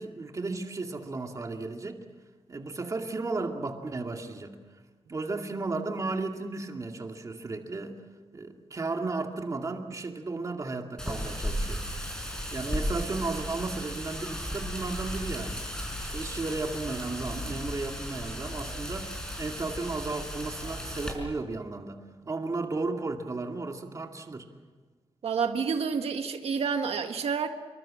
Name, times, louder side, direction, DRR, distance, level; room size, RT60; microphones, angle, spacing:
voice 1, 0.0-2.0 2.5-4.6 5.1-8.0 8.3-11.8 12.5-15.6 16.0-24.5, right 3 dB, 35° right, 3 dB, 2.3 m, -34 dB
Wind, 11.0-21.1, equal, 5° left, 5.1 m, -35 dB
voice 2, 25.2-27.5, right 6 dB, 85° right, 6 dB, 1.6 m, -29 dB
26.5 x 23.5 x 7.7 m, 1.4 s
wide cardioid pair, 160°, 10 cm